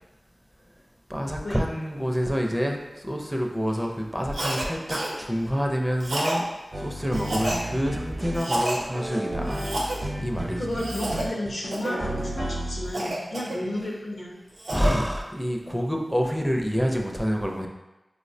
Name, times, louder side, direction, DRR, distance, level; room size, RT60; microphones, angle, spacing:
voice 1, 1.1-6.4 6.8-9.7 10.2-10.6 14.7-17.7, equal, 5° right, 1 dB, 0.4 m, -27 dB
Cough, 4.3-4.6 4.9-5.1 6.0-6.4 7.1-7.6 8.3-8.8 9.5-10.0 10.7-11.2 11.7-12.0 12.9-13.9 14.3-14.9, right 1 dB, 90° right, 0.6 m, -29 dB
sound 1, 6.7-13.1 13.8-13.9, right 1 dB, 55° right, 0.8 m, -32 dB
voice 2, 10.6-14.3, left 1 dB, 75° left, -1 dB, 0.6 m, -32 dB
4.4 x 2.0 x 2.6 m, 1.0 s
wide cardioid pair, 60°, 0 cm